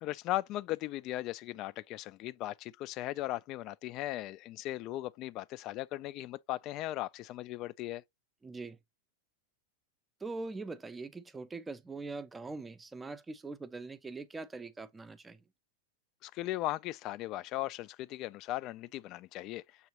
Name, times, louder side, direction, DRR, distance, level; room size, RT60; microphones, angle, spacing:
voice 1, 0.0-8.0 16.2-19.6, left 16 dB, 45° left, 0.3 m, -37 dB
voice 2, 8.4-8.8 10.2-15.4, right 3 dB, 15° right, 0.5 m, -42 dB
6.8 x 2.4 x 2.9 m
hypercardioid pair, 115°, 0 cm